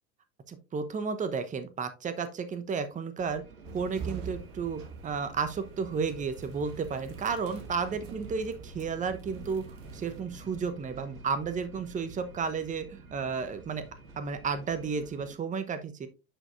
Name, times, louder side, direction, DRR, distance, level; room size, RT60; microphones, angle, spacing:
voice 1, 0.5-3.4 3.7-13.8 14.2-16.1, right 5 dB, 20° right, 11 dB, 0.9 m, -33 dB
sound 1, 3.2-15.3, right 3 dB, 85° right, 1.2 m, -49 dB
sound 2, 3.6-10.2, right 6 dB, 60° right, 1.6 m, -45 dB
9.9 x 5.0 x 2.5 m, 0.29 s
figure-of-eight pair, 80°, 41 cm